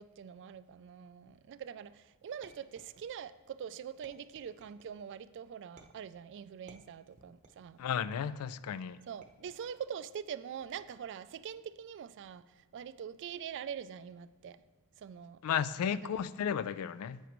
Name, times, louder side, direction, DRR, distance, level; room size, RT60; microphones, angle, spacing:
voice 1, 0.0-7.8 9.1-14.6 15.0-15.4 15.9-16.0, right 8 dB, 55° right, 0.3 m, -44 dB
sound 1, 2.4-3.4 4.0-4.9 5.8-6.2 6.7-7.7 8.2-8.6 9.2-9.9 10.6-11.1, right 3 dB, 35° right, 0.8 m, -60 dB
voice 2, 7.8-9.0 15.4-17.2, left 8 dB, 85° left, 0.3 m, -34 dB
11.0 x 8.1 x 3.0 m
head